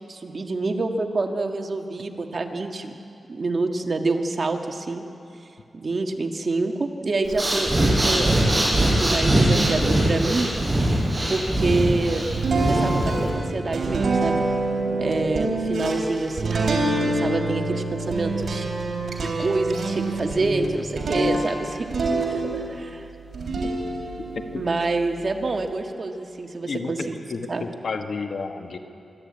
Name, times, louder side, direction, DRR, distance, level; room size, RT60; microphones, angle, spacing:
voice 1, 0.1-3.0 3.3-5.0 5.7-10.5 11.3-12.3 12.6-14.4 15.0-18.6 19.2-21.9 22.2-23.1 24.5-27.2 27.5-27.6, right 3 dB, 45° right, 4 dB, 1.6 m, -27 dB
Breathing, 7.2-13.3, right 1 dB, 20° right, 6.3 m, -21 dB
sound 1, 12.3-22.9 23.3-25.7, right 2 dB, 70° right, 3.6 m, -26 dB
voice 2, 26.6-28.8, left 4 dB, 65° left, 5 dB, 1.5 m, -31 dB
25.0 x 13.0 x 8.7 m, 2.6 s
wide cardioid pair, 90°, 0 cm